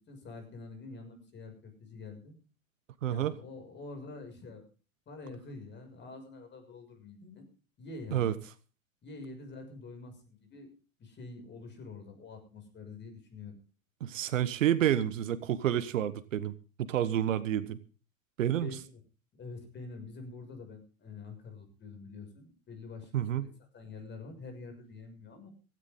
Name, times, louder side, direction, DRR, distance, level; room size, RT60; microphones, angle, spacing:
voice 1, 0.0-2.3 3.0-4.7 5.1-7.4 7.8-8.3 9.0-10.7 11.0-13.5 18.6-18.8 19.3-23.5 23.7-25.5, left 3 dB, 25° left, 7 dB, 6.4 m, -46 dB
voice 2, 3.0-3.3 8.1-8.3 14.0-16.5 16.8-17.8 18.4-18.7 23.1-23.5, right 11 dB, 65° right, 16 dB, 1.3 m, -29 dB
16.5 x 16.5 x 3.8 m, 0.35 s
figure-of-eight pair, 90°, 42 cm